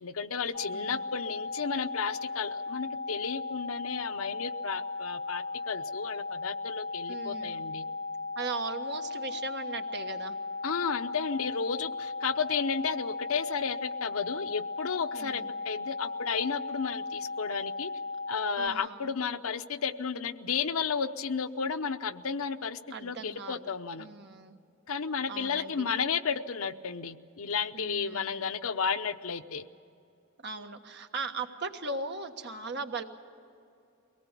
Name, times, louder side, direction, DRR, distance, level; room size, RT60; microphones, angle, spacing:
voice 1, 0.0-7.8 10.6-17.9 18.3-24.1 24.9-29.7, left 6 dB, 75° left, 10 dB, 0.8 m, -33 dB
sound 1, 0.5-18.7, left 3 dB, 40° left, 0.6 m, -37 dB
voice 2, 0.7-1.0 7.1-7.6 8.3-10.4 15.2-15.5 18.6-19.1 22.9-23.7 24.0-24.6 25.3-25.9 27.7-28.5 30.4-33.0, right 3 dB, 55° right, 5 dB, 1.4 m, -38 dB
23.5 x 18.5 x 8.3 m, 2.6 s
head